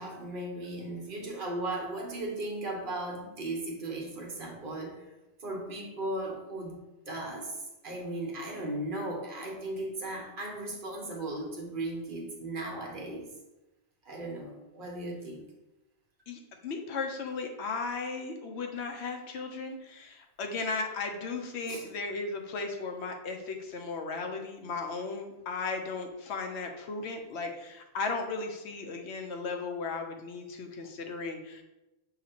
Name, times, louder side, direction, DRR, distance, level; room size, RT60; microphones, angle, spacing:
voice 1, 0.0-5.1 5.4-6.8 7.1-7.5 7.8-13.3 14.0-15.4 21.7-21.9, right 1 dB, 55° right, 0 dB, 1.0 m, -36 dB
voice 2, 16.3-31.6, left 4 dB, 85° left, 4 dB, 0.9 m, -36 dB
6.5 x 2.9 x 2.8 m, 0.98 s
omnidirectional pair, 1.1 m